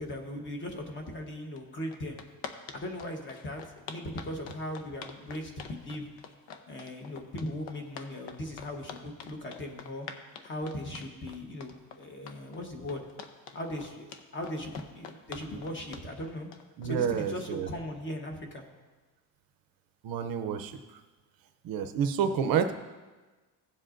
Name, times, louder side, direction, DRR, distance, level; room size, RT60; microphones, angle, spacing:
voice 1, 0.0-2.2 2.7-3.6 3.9-6.1 6.7-10.1 10.4-13.0 13.5-16.5 16.8-18.6, left 1 dB, 25° left, 3 dB, 1.1 m, -38 dB
sound 1, 1.6-1.7 1.9-17.5, left 7 dB, 85° left, 0.9 m, -45 dB
voice 2, 16.8-17.7 20.0-21.0 21.6-22.7, right 7 dB, 55° right, 8 dB, 0.6 m, -29 dB
16.5 x 7.6 x 2.5 m, 1.3 s
cardioid pair, 175°, 42 cm